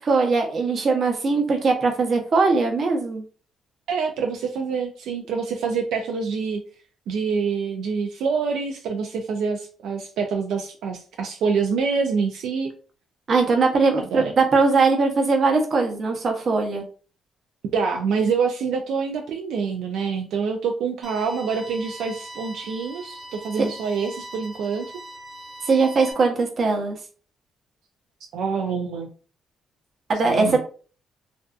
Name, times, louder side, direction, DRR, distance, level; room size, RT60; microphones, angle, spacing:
voice 1, 0.0-3.2 13.3-16.8 25.7-27.0 30.1-30.6, right 4 dB, 50° right, 3 dB, 0.7 m, -20 dB
voice 2, 3.9-6.6 7.1-12.7 14.0-14.2 17.7-24.9 28.3-29.1 30.2-30.6, right 5 dB, 80° right, 3 dB, 0.3 m, -26 dB
sound 1, 21.0-26.1, right 1 dB, 10° right, 0.8 m, -41 dB
2.5 x 2.3 x 2.3 m, 0.40 s
cardioid pair, 90°, 0 cm